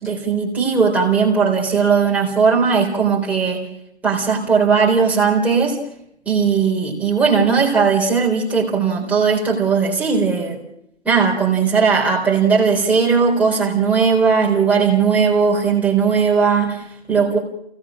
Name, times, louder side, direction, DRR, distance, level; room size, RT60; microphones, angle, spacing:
voice 1, 0.0-3.7 4.0-5.8 6.3-10.6 11.0-17.4, right 5 dB, 5° right, -3 dB, 3.8 m, -17 dB
28.5 x 17.5 x 6.2 m, 0.76 s
hypercardioid pair, 150°, 33 cm